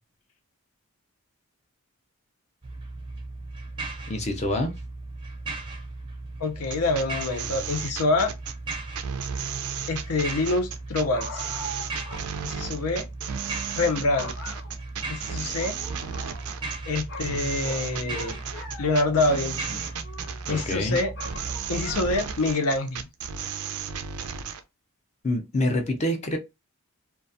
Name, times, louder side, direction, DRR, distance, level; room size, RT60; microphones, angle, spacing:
sound 1, 2.6-22.4, right 2 dB, 25° right, 0.5 m, -37 dB
voice 1, 4.1-4.7 20.5-21.0 25.2-26.4, left 1 dB, 30° left, 0.5 m, -26 dB
voice 2, 6.4-8.3 9.9-11.4 12.4-13.1 13.7-14.3 15.1-15.8 16.9-18.4 18.8-19.8 20.5-21.1 21.7-23.1, left 2 dB, 90° left, 0.7 m, -26 dB
sound 2, 6.6-24.6, right 7 dB, 80° right, 0.4 m, -34 dB
sound 3, 11.1-12.2 12.6-12.7 13.6-13.8 14.2-15.1 15.6-16.8 17.1-19.3 19.8-20.7 21.2-22.5, left 1 dB, 55° left, 0.8 m, -41 dB
2.3 x 2.2 x 2.6 m
head